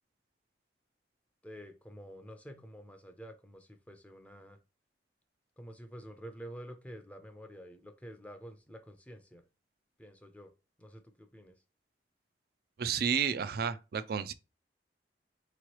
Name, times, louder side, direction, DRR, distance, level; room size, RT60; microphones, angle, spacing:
voice 1, 1.4-4.6 5.6-9.4 10.0-10.5 10.8-11.5, equal, 10° left, 0.5 m, -49 dB
voice 2, 12.8-14.3, right 7 dB, 55° right, 0.4 m, -31 dB
4.7 x 3.1 x 3.0 m
head